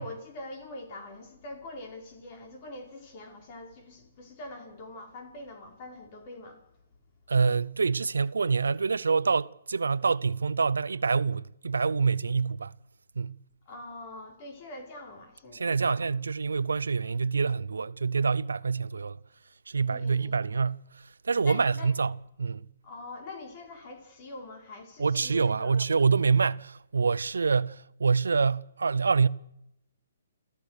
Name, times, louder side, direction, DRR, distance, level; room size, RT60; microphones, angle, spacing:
voice 1, 0.0-6.6 13.7-16.0 19.9-20.4 21.4-21.9 22.8-25.8, left 2 dB, 35° left, 5.0 m, -44 dB
voice 2, 7.3-12.7 13.2-13.4 15.5-19.2 19.7-20.8 21.2-22.6 25.0-29.3, right 5 dB, 90° right, 0.7 m, -26 dB
28.5 x 14.5 x 6.6 m
hypercardioid pair, 150°, 0 cm